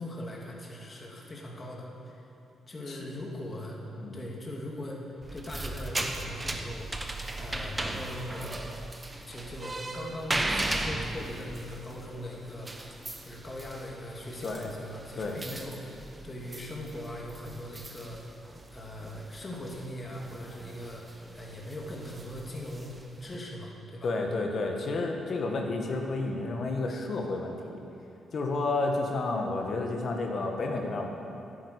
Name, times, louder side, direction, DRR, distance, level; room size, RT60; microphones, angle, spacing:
voice 1, 0.0-2.3 2.7-3.8 4.1-7.1 7.4-8.6 9.3-12.7 13.2-18.4 18.7-24.1, left 1 dB, 35° left, -1 dB, 2.8 m, -40 dB
sound 1, 5.2-23.4, right 2 dB, 20° right, 1.2 m, -38 dB
voice 2, 24.0-27.8 28.3-31.1, left 3 dB, 55° left, 2 dB, 1.9 m, -31 dB
10.5 x 9.8 x 8.5 m, 2.8 s
supercardioid pair, 65°, 0 cm